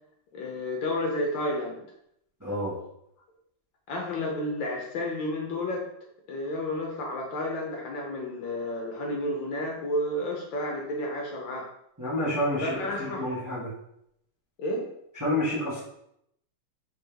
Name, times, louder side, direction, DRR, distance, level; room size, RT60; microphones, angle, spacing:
voice 1, 0.3-1.8 3.9-5.9 6.3-11.7 12.6-13.5 14.6-14.9, left 1 dB, 70° left, 0 dB, 1.4 m, -31 dB
voice 2, 2.4-2.8 12.0-13.7 15.2-15.8, left 1 dB, 10° right, -8 dB, 0.9 m, -29 dB
4.2 x 3.5 x 3.4 m, 0.76 s
omnidirectional pair, 2.4 m